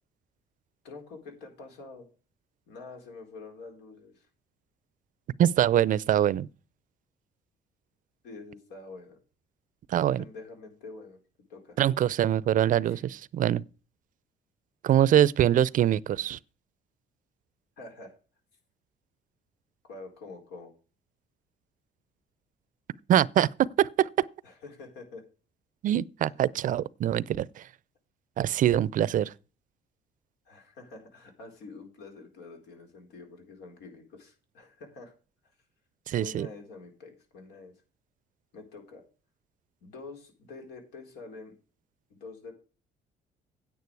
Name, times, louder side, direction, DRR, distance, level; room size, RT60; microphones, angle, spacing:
voice 1, 0.8-2.1 2.7-4.3 8.2-9.2 10.2-11.2 11.5-11.8 12.8-13.0 17.8-18.1 19.8-20.7 24.4-25.2 30.5-35.1 36.2-37.7 38.5-39.0 39.8-41.5 42.1-42.5, left 3 dB, 85° left, 4.0 m, -46 dB
voice 2, 5.4-6.5 9.9-10.2 11.8-13.6 14.8-16.4 23.1-23.5 23.8-24.1 25.8-27.5 28.4-29.3 36.1-36.5, right 11 dB, 50° right, 0.5 m, -24 dB
9.6 x 8.9 x 4.7 m
cardioid pair, 110°, 17 cm